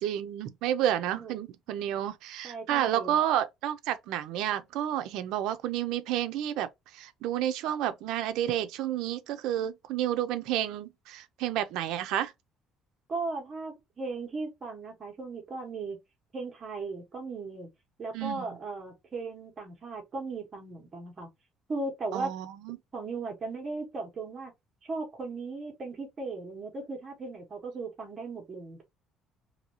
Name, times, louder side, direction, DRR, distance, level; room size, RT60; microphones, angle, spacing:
voice 1, 0.0-12.3 18.1-18.6 22.1-22.8, right 11 dB, 75° right, 0.4 m, -30 dB
voice 2, 2.4-3.2 13.1-16.0 16.3-17.7 18.0-21.3 21.7-22.3 22.9-24.5 24.8-28.8, right 3 dB, 25° right, 1.2 m, -37 dB
2.7 x 2.7 x 2.8 m
cardioid pair, 175°, 0 cm